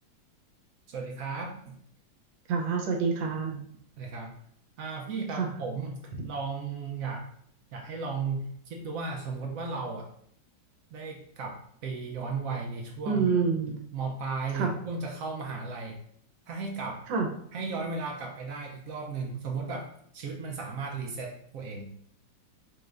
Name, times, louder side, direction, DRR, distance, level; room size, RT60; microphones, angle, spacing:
voice 1, 0.9-1.8 4.0-4.3 4.8-7.3 7.7-10.1 10.9-13.3 13.9-16.0 16.5-17.1 17.5-21.9, right 4 dB, 70° right, 1 dB, 0.8 m, -35 dB
voice 2, 2.5-3.6 5.4-5.5 13.1-13.7 14.5-14.7 17.1-17.3, right 5 dB, 85° right, 2 dB, 1.5 m, -27 dB
4.4 x 3.2 x 2.4 m, 0.67 s
omnidirectional pair, 2.0 m